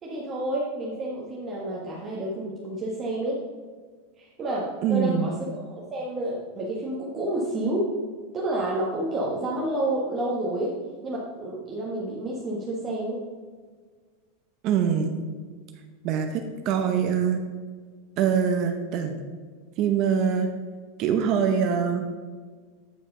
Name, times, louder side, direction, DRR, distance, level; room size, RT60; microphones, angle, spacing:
voice 1, 0.0-3.4 4.2-7.9 8.3-10.7 11.0-13.2, right 1 dB, 25° right, -4 dB, 1.4 m, -29 dB
voice 2, 4.8-5.3 14.6-15.2 16.0-17.4 18.2-19.2 19.8-20.5 21.0-22.2, right 7 dB, 40° right, 5 dB, 0.8 m, -24 dB
9.1 x 5.3 x 5.4 m, 1.5 s
supercardioid pair, 145°, 0 cm